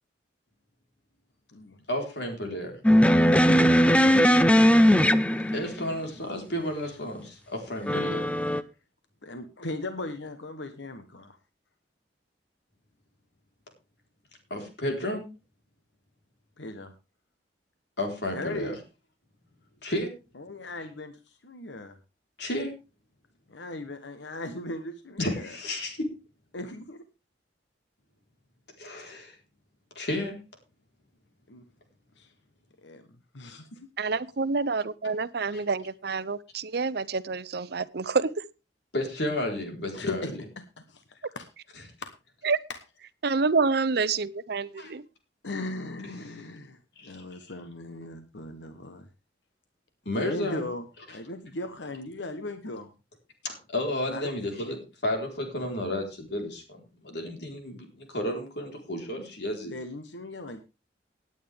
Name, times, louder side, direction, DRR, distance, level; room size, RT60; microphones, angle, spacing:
voice 1, 1.9-2.7 5.5-8.3 14.5-15.2 18.0-18.7 19.8-20.1 22.4-22.7 25.2-26.1 28.8-29.3 30.0-30.3 38.9-40.2 44.7-44.9 47.0-47.1 50.1-50.6 53.4-56.6 57.0-59.7, left 1 dB, 65° left, 2 dB, 4.3 m, -32 dB
sound 1, 2.8-5.8 7.9-8.6, equal, 5° left, 0.6 m, -19 dB
voice 2, 9.2-11.4 16.6-16.9 18.3-18.8 20.3-22.0 23.5-25.5 26.5-27.0 31.5-31.6 32.2-32.3 32.8-33.1 33.3-33.9 39.9-40.6 40.9-41.4 42.0-42.1 42.7-42.8 45.4-49.1 50.1-52.9 54.1-54.3 59.7-60.6, left 2 dB, 80° left, 8 dB, 1.2 m, -38 dB
voice 3, 34.0-38.4 42.4-42.6 43.2-45.0, right 4 dB, 60° right, 16 dB, 0.7 m, -27 dB
18.5 x 9.3 x 3.6 m, 0.29 s
head